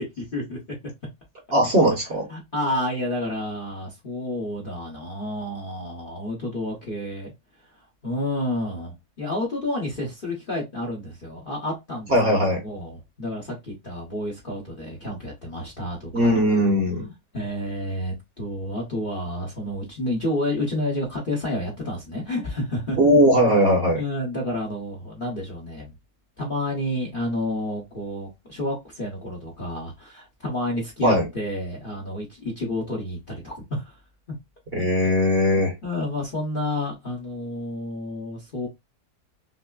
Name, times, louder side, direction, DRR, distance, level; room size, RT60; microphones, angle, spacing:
voice 1, 0.2-0.6 2.3-7.3 7.6-16.4 17.3-23.0 23.9-25.9 26.4-34.0 35.8-38.7, left 1 dB, 35° left, 1.0 m, -30 dB
voice 2, 1.5-2.2 12.1-12.6 16.1-17.0 23.0-24.0 31.0-31.2 34.7-35.7, equal, 40° right, 1.2 m, -19 dB
5.5 x 2.0 x 2.3 m
omnidirectional pair, 1.9 m